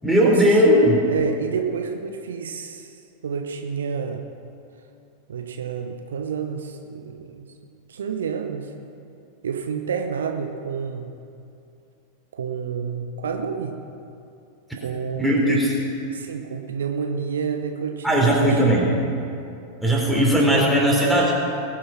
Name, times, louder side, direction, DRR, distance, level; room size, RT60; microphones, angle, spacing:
voice 1, 0.0-1.0 15.2-15.7 18.0-19.0 19.8-21.3, equal, ahead, -3 dB, 4.0 m, -18 dB
voice 2, 1.0-3.0 3.2-4.2 5.3-7.5 7.9-8.7 9.4-11.1 12.3-13.8 14.8-15.7 16.1-18.6, right 6 dB, 65° right, 5 dB, 0.9 m, -29 dB
21.0 x 8.0 x 5.8 m, 2.7 s
figure-of-eight pair, 90°, 0 cm